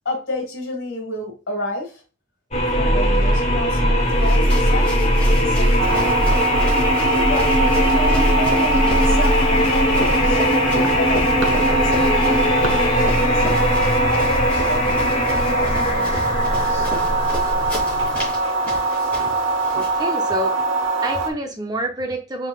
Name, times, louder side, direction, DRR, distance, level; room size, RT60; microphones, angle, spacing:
voice 1, 0.1-2.0 2.7-4.9 5.4-6.2 7.0-10.4 10.9-13.8 14.1-16.1 16.5-16.9, left 2 dB, 70° left, 2.1 m, -30 dB
sound 1, 2.5-18.4, equal, 30° left, 1.0 m, -19 dB
sound 2, 4.0-20.0, equal, 5° left, 2.4 m, -34 dB
sound 3, 5.8-21.3, right 3 dB, 70° right, 0.8 m, -23 dB
voice 2, 19.7-20.6 21.0-22.5, right 1 dB, 20° right, 0.5 m, -27 dB
5.5 x 3.6 x 2.3 m
head